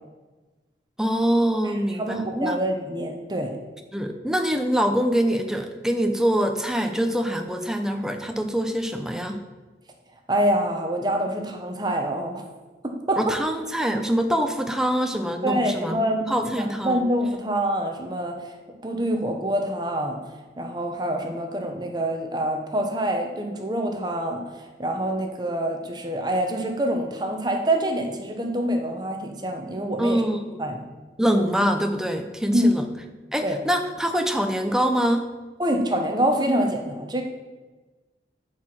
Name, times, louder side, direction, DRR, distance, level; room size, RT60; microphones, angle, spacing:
voice 1, 1.0-2.6 3.9-9.4 13.2-16.0 16.3-17.1 30.0-30.7 31.2-32.9 33.3-35.3, equal, 5° right, 5 dB, 0.7 m, -24 dB
voice 2, 1.6-3.6 10.3-12.4 12.8-13.4 15.4-18.6 18.8-20.2 20.6-30.2 30.6-30.8 32.5-32.7 33.4-33.6 35.6-37.2, right 1 dB, 25° right, 3 dB, 1.0 m, -26 dB
9.9 x 4.8 x 7.6 m, 1.3 s
head